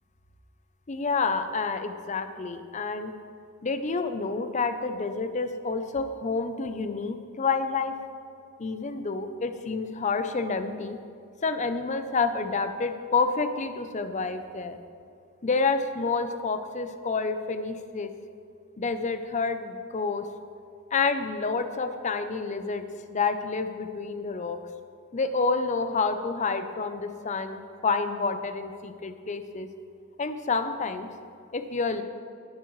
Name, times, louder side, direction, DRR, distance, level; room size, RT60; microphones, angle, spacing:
voice 1, 0.9-3.1 3.6-8.0 8.6-11.0 11.4-14.8 15.4-18.1 18.8-20.3 20.9-24.6 25.1-29.7 30.2-31.1 31.5-32.0, left 4 dB, 35° left, 9 dB, 0.6 m, -29 dB
19.0 x 7.4 x 3.2 m, 2.5 s
head